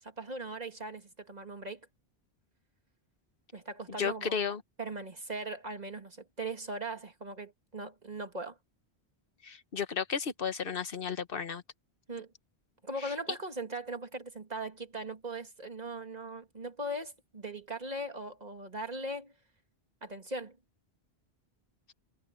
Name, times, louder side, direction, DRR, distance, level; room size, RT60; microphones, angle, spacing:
voice 1, 0.0-1.8 3.5-4.4 4.8-8.6 12.1-12.3 12.8-19.3 20.0-20.6, right 2 dB, 40° right, 2.5 m, -39 dB
voice 2, 4.0-4.6 9.4-11.6 13.0-13.1, left 6 dB, 60° left, 1.3 m, -33 dB
omnidirectional pair, 1.1 m